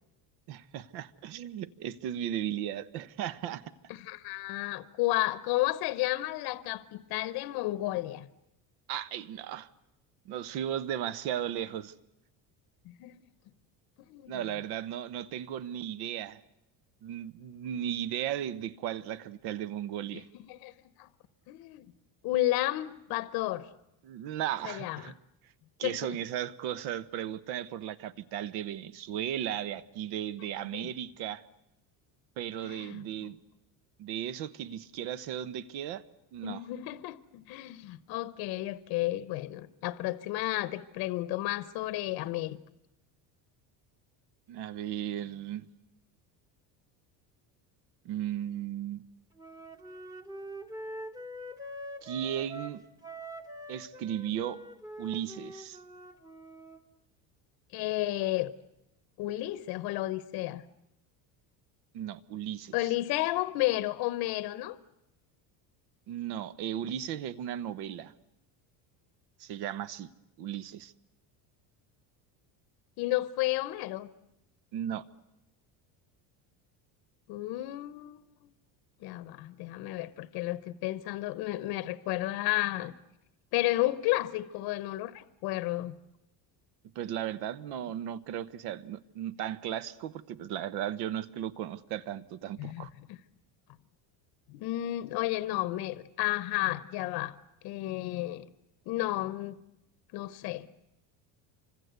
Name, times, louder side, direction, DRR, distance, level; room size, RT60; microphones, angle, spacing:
voice 1, 0.5-3.7 8.9-9.7 10.2-11.9 14.3-16.4 17.0-20.3 24.0-25.1 25.8-31.4 32.4-33.4 34.0-36.0 36.3-36.6 44.5-45.7 48.0-49.0 52.0-52.8 53.7-54.6 55.0-55.8 61.9-62.7 66.1-68.1 69.4-70.1 70.4-70.9 74.7-75.0 86.9-92.9, right 10 dB, 60° right, 1.2 m, -36 dB
voice 2, 3.9-8.3 12.8-13.1 14.0-14.4 20.5-20.7 21.0-21.1 21.5-21.9 22.2-23.7 24.6-25.1 25.8-26.0 30.7-30.9 32.6-33.0 36.4-42.6 57.7-58.5 59.2-60.6 62.7-64.8 73.0-74.1 77.3-78.3 79.0-82.9 83.5-85.9 92.6-93.2 94.5-97.3 97.6-98.5 98.9-99.6 100.1-100.7, left 17 dB, 55° left, 1.0 m, -32 dB
Wind instrument woodwind instrument, 49.4-56.8, right 1 dB, 10° right, 1.2 m, -44 dB
28.5 x 25.5 x 8.1 m
cardioid pair, 160°, 44 cm